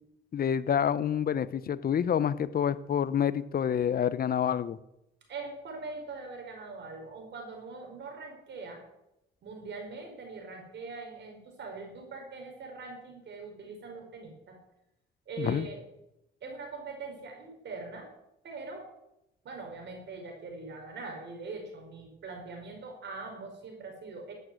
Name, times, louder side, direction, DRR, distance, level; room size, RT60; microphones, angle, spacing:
voice 1, 0.3-4.8 15.4-15.7, left 8 dB, 50° left, 15 dB, 0.9 m, -28 dB
voice 2, 5.3-8.8 9.4-14.6 15.3-15.8 16.4-18.1 18.4-18.9 19.4-24.3, right 3 dB, 65° right, 3 dB, 5.3 m, -42 dB
13.5 x 8.8 x 7.9 m, 0.86 s
cardioid pair, 90°, 20 cm